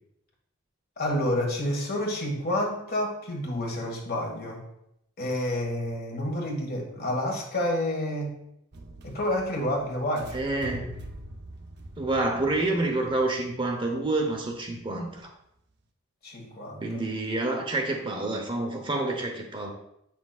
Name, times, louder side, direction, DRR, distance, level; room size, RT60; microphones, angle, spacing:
voice 1, 1.0-4.6 5.2-8.4 9.0-10.4 16.2-17.0, left 1 dB, 50° left, 0 dB, 1.7 m, -29 dB
sound 1, 8.7-14.8, right 1 dB, 55° right, 0.8 m, -44 dB
voice 2, 10.3-11.0 12.0-15.3 16.8-19.7, right 2 dB, 25° right, 2 dB, 0.9 m, -28 dB
8.5 x 6.0 x 2.4 m, 0.79 s
head